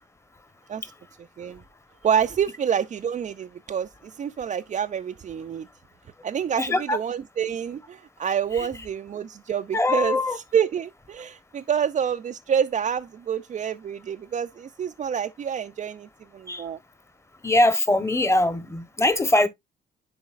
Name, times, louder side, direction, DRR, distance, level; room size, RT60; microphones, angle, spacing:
voice 1, 2.0-5.7 6.2-16.1 16.3-16.8, right 8 dB, 40° right, 0.4 m, -27 dB
voice 2, 6.6-7.0 8.5-8.7 9.7-10.4 16.5-16.6 17.4-19.5, left 2 dB, 15° left, 1.0 m, -22 dB
10.5 x 4.0 x 2.4 m
cardioid pair, 90°, 20 cm